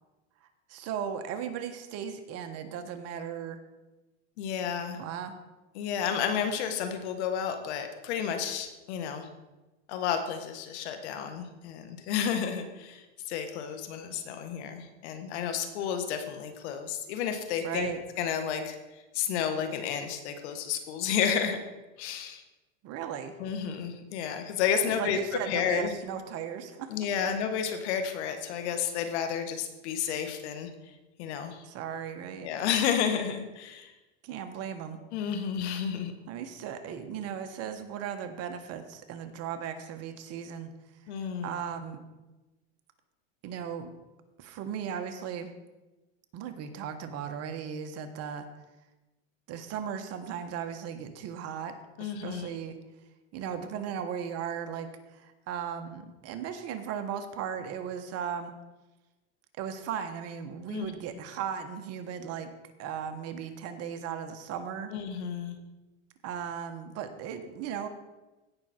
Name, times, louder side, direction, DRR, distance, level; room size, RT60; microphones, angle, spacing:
voice 1, 0.7-3.6 5.0-5.4 17.6-18.0 22.8-23.4 24.8-26.9 31.6-32.5 34.2-35.0 36.3-40.7 41.4-42.0 43.4-43.9 44.4-45.5 46.3-48.5 49.5-52.8 53.3-58.5 59.6-62.5 62.8-64.9 66.2-67.9, right 8 dB, 45° right, 8 dB, 1.3 m, -37 dB
voice 2, 4.4-5.0 5.7-9.3 9.9-17.9 18.2-21.6 22.0-22.4 23.4-25.2 25.5-25.9 26.9-30.7 31.2-31.6 32.4-33.9 35.1-36.1 41.1-41.6 52.0-52.5 60.7-60.9 64.9-65.6, left 8 dB, 75° left, 7 dB, 1.7 m, -31 dB
16.5 x 6.0 x 4.4 m, 1.1 s
supercardioid pair, 125°, 34 cm